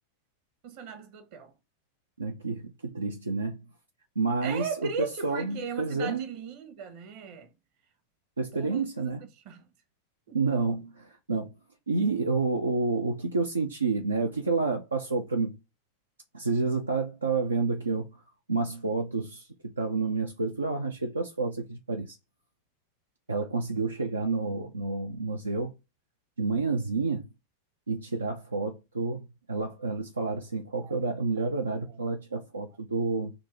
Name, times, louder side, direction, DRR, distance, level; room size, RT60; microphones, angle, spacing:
voice 1, 0.6-1.5 4.4-7.5 8.5-9.1 9.4-9.7 10.3-10.4 29.6-29.7 30.8-31.0 31.9-32.0, right 6 dB, 45° right, 1.1 m, -38 dB
voice 2, 2.2-3.6 4.2-6.3 8.4-9.2 10.3-11.5 11.9-15.6 16.3-18.1 18.5-22.2 23.3-25.7 26.4-27.3 27.9-33.3, right 4 dB, 75° right, 0.5 m, -29 dB
5.1 x 2.9 x 3.5 m
figure-of-eight pair, 90°, 0 cm